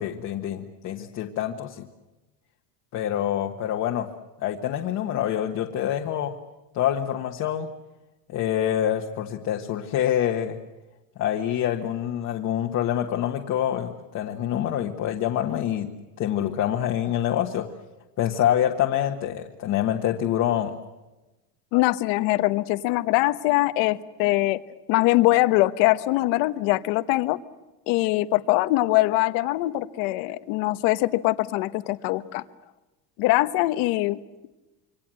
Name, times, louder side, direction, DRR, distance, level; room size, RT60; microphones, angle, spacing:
voice 1, 0.0-1.8 2.9-4.1 4.4-6.3 6.7-7.7 8.3-10.6 11.2-15.9 16.2-17.7 18.2-20.7, left 11 dB, 35° left, 2 dB, 1.4 m, -26 dB
voice 2, 21.7-24.6 24.9-27.4 27.9-32.4 33.2-34.2, left 18 dB, 60° left, 13 dB, 1.2 m, -22 dB
27.0 x 24.5 x 7.7 m, 1.1 s
cardioid pair, 180°, 48 cm